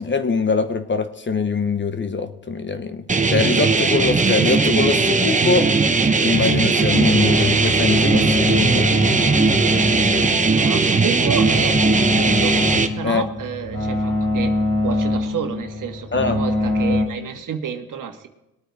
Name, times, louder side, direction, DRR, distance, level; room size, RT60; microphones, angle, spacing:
voice 1, 0.0-5.7 6.2-8.9 13.0-13.3 16.1-16.4, left 4 dB, 30° left, 9 dB, 1.1 m, -23 dB
sound 1, 3.1-12.9, right 4 dB, 20° right, 1.1 m, -18 dB
sound 2, 6.9-17.0, left 1 dB, 55° left, 3.1 m, -23 dB
voice 2, 10.6-14.5 14.8-18.3, right 7 dB, 60° right, 5 dB, 1.7 m, -30 dB
21.5 x 9.0 x 3.6 m, 0.93 s
cardioid pair, 85°, 36 cm